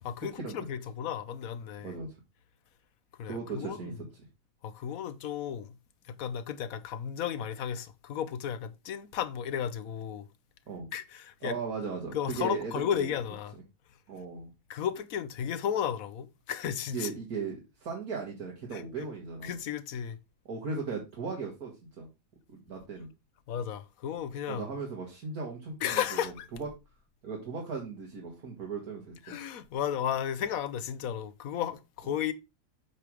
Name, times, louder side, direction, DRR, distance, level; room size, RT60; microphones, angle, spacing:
voice 1, 0.0-1.9 3.2-3.9 4.6-5.8 6.1-10.3 10.9-11.6 12.1-13.6 14.7-17.1 18.7-19.1 19.4-20.2 23.5-24.6 25.8-26.5 29.3-32.3, left 9 dB, 65° left, 1.1 m, -34 dB
voice 2, 1.8-2.2 3.2-3.9 10.7-10.9 11.4-13.1 14.1-14.5 16.9-19.6 20.5-21.7 22.0-22.1 22.5-23.1 24.5-26.2 26.6-26.7 27.2-29.1, right 5 dB, 65° right, 2.1 m, -37 dB
8.5 x 3.4 x 6.1 m
omnidirectional pair, 1.7 m